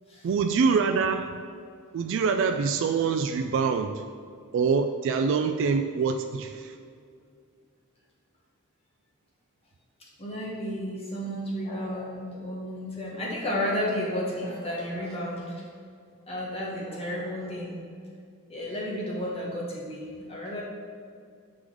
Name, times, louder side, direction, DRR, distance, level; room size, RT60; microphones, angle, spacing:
voice 1, 0.2-1.3 1.9-4.0 4.5-6.7, right 5 dB, 55° right, 6 dB, 0.3 m, -25 dB
voice 2, 10.2-15.6 16.3-17.8 18.5-20.6, equal, 25° left, -4 dB, 1.4 m, -32 dB
6.2 x 4.9 x 3.8 m, 2.2 s
head